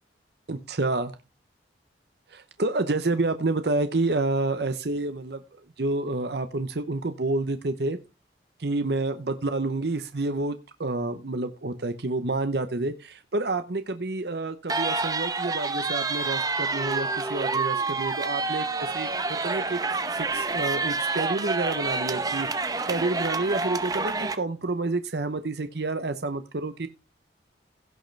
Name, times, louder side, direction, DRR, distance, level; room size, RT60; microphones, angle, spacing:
voice 1, 0.5-1.1 2.3-5.4 5.8-8.0 8.6-18.7 18.9-19.1 19.4-19.8 20.1-26.9, right 2 dB, 60° right, 10 dB, 0.8 m, -29 dB
sound 1, 14.7-24.3, right 3 dB, 20° right, 0.8 m, -28 dB
16.5 x 6.5 x 3.3 m, 0.27 s
head